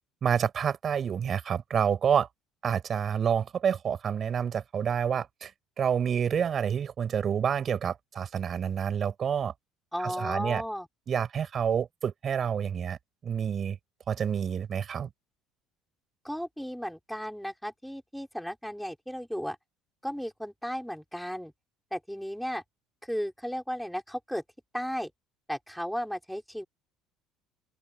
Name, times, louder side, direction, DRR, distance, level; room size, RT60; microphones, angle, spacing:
voice 1, 0.2-2.3 2.6-5.5 5.8-9.5 10.0-10.6 11.1-13.0 13.2-13.8 14.1-15.1, right 8 dB, 45° right, 6.2 m, -28 dB
voice 2, 9.9-10.9 16.2-19.6 20.0-21.5 21.9-22.6 23.0-24.4 24.7-25.1 25.5-26.7, equal, ahead, 5.3 m, -34 dB
open air
supercardioid pair, 80°, 0 cm